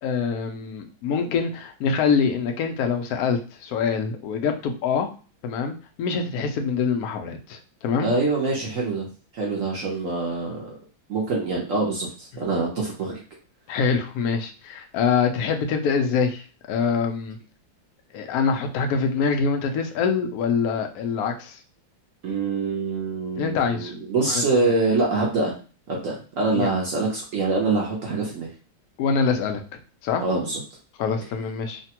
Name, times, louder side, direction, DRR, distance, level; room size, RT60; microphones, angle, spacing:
voice 1, 0.0-5.1 5.4-8.1 13.7-17.4 18.1-21.6 23.3-23.9 24.3-24.7 26.5-26.7 29.0-29.6 30.0-30.2 31.0-31.8, left 5 dB, 85° left, 4 dB, 0.8 m, -25 dB
voice 2, 8.0-9.1 9.3-10.8 11.1-13.2 22.2-25.6 25.9-28.5 30.2-30.6, right 3 dB, 65° right, -2 dB, 0.8 m, -25 dB
3.2 x 2.2 x 2.8 m, 0.36 s
omnidirectional pair, 2.2 m